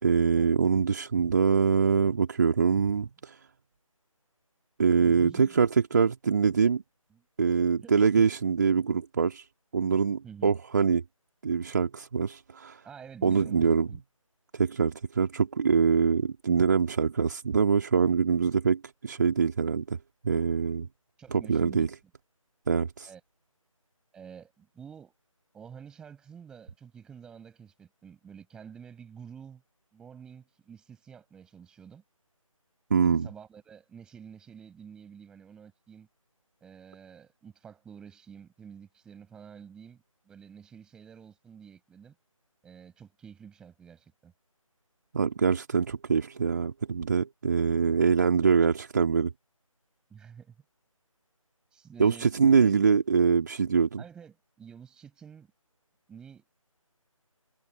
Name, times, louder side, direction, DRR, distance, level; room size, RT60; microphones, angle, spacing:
voice 1, 0.0-3.4 4.8-6.8 7.4-9.5 9.7-11.0 11.4-12.8 13.2-13.9 14.5-20.0 20.2-20.9 21.3-21.9 22.7-23.1 32.9-33.3 45.1-49.3 52.0-54.0, right 5 dB, 30° right, 2.3 m, -24 dB
voice 2, 5.0-5.6 7.1-7.2 7.8-8.3 10.2-10.5 12.8-14.0 21.2-21.9 23.1-23.2 24.1-25.1 25.5-29.6 29.9-32.0 33.0-36.1 36.6-42.2 42.6-44.3 50.1-50.5 51.7-52.7 54.0-55.5 56.1-56.4, right 7 dB, 5° right, 7.9 m, -49 dB
figure-of-eight pair, 155°, 18 cm